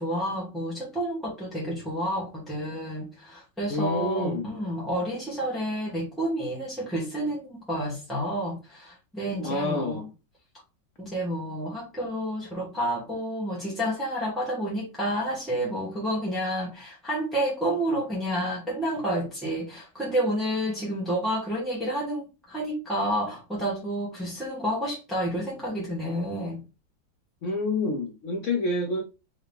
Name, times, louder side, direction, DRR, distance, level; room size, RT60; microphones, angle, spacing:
voice 1, 0.0-10.0 11.0-26.6, equal, ahead, 0.9 m, -30 dB
voice 2, 3.7-4.5 9.3-10.1 27.4-29.0, left 2 dB, 70° left, 0.7 m, -28 dB
3.7 x 2.8 x 3.3 m
omnidirectional pair, 2.0 m